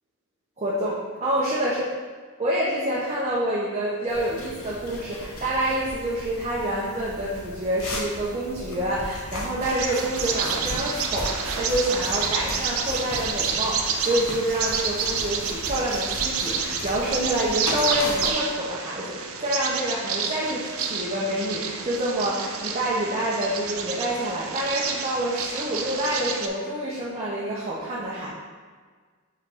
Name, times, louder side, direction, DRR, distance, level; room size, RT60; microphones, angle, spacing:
voice 1, 0.6-1.8 2.4-28.3, right 1 dB, 30° right, -7 dB, 0.9 m, -27 dB
sound 1, 4.1-18.3, left 1 dB, 85° left, 1.1 m, -37 dB
Bird vocalization bird call bird song, 9.6-26.5, right 6 dB, 75° right, 0.6 m, -29 dB
4.9 x 4.2 x 4.9 m, 1.5 s
head